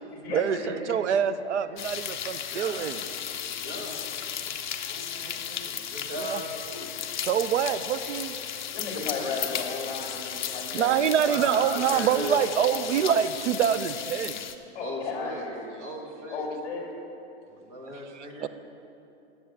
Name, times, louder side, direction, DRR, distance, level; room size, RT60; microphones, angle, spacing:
voice 1, 0.3-3.0 5.2-5.4 6.3-6.4 7.2-8.4 10.7-14.4 17.9-18.5, right 9 dB, 85° right, 13 dB, 0.6 m, -26 dB
voice 2, 1.6-7.0 11.3-12.4 14.8-15.4 15.8-16.4 17.5-18.5, equal, 30° right, 0 dB, 1.4 m, -38 dB
sound 1, 1.8-14.6, left 9 dB, 45° left, 0.5 m, -35 dB
voice 3, 8.7-11.4 14.7-15.7 16.3-16.8, left 4 dB, 20° left, -2 dB, 1.9 m, -34 dB
8.0 x 7.6 x 8.3 m, 2.9 s
hypercardioid pair, 175°, 34 cm